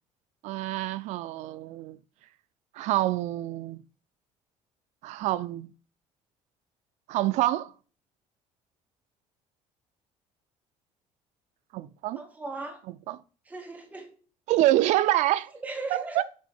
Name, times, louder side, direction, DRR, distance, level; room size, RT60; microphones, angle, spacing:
voice 1, 0.4-2.0 2.7-3.8 5.0-5.7 7.1-7.7 11.7-12.2 13.1-13.2 14.5-15.5 15.9-16.2, right 15 dB, 65° right, 0.4 m, -26 dB
voice 2, 12.2-12.8 13.5-14.1 15.6-16.2, right 3 dB, 10° right, 1.1 m, -37 dB
7.6 x 3.5 x 4.2 m
cardioid pair, 135°, 13 cm